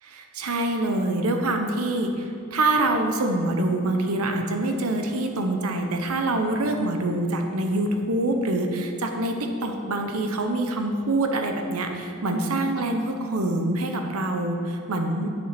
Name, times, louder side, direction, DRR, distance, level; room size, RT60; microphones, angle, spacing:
voice 1, 0.0-15.3, right 2 dB, 90° right, 4 dB, 1.0 m, -25 dB
8.3 x 7.2 x 5.9 m, 2.7 s
head